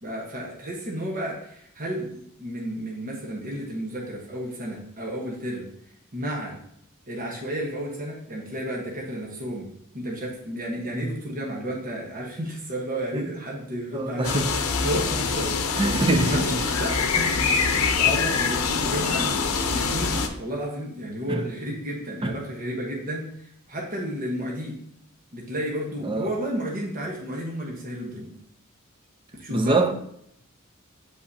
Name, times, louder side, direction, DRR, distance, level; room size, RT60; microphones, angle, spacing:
voice 1, 0.0-5.7 6.1-6.5 7.1-9.7 9.9-16.5 16.8-24.8 25.3-28.3 29.4-29.8, right 1 dB, 40° right, 1.1 m, -32 dB
voice 2, 13.9-14.5 15.8-16.6 21.3-21.5 22.2-22.3 26.0-26.3 29.5-29.9, right 2 dB, 25° right, 0.5 m, -24 dB
sound 1, 14.2-20.3, left 5 dB, 70° left, 0.7 m, -24 dB
8.2 x 5.6 x 2.7 m
head